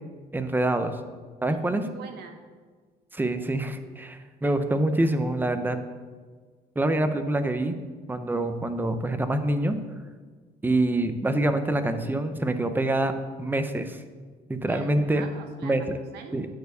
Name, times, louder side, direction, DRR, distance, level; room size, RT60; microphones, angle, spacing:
voice 1, 0.3-1.0 1.4-1.8 3.1-5.8 6.8-7.8 8.1-9.8 10.6-13.1 13.4-14.0 14.5-15.3 15.6-15.8 16.3-16.5, right 1 dB, 10° right, 8 dB, 0.7 m, -25 dB
voice 2, 1.5-2.4 14.7-16.4, right 6 dB, 75° right, 6 dB, 1.0 m, -44 dB
9.2 x 4.6 x 6.7 m, 1.5 s
cardioid pair, 110°, 17 cm